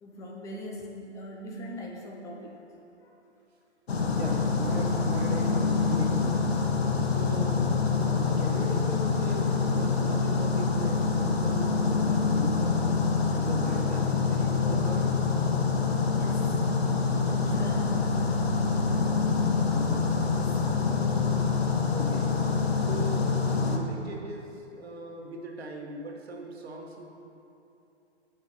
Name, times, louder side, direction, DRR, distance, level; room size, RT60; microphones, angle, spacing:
voice 1, 0.0-2.5 3.0-3.1 16.1-16.5 17.3-17.9 20.3-20.8, left 1 dB, 10° left, -1 dB, 0.6 m, -41 dB
sound 1, 3.9-23.8, left 4 dB, 60° left, 1.0 m, -26 dB
voice 2, 4.0-6.4 7.1-7.7 8.0-12.9 13.3-15.1 19.6-20.1 21.9-22.3 22.8-27.0, right 2 dB, 60° right, 0 dB, 1.4 m, -39 dB
16.5 x 6.1 x 2.9 m, 2.8 s
figure-of-eight pair, 130°, 35 cm